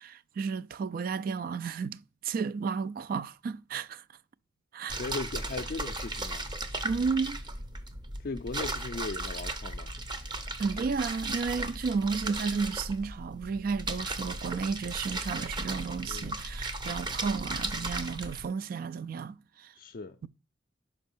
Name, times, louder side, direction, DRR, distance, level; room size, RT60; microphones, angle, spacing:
voice 1, 0.0-4.0 4.7-5.0 6.8-7.4 10.6-19.7, right 5 dB, 50° right, 0.3 m, -33 dB
sound 1, 4.9-18.4, right 2 dB, 25° right, 0.6 m, -36 dB
voice 2, 5.0-6.5 8.2-9.9 16.1-16.4 19.8-20.2, left 3 dB, 50° left, 0.4 m, -38 dB
5.8 x 5.2 x 5.4 m
head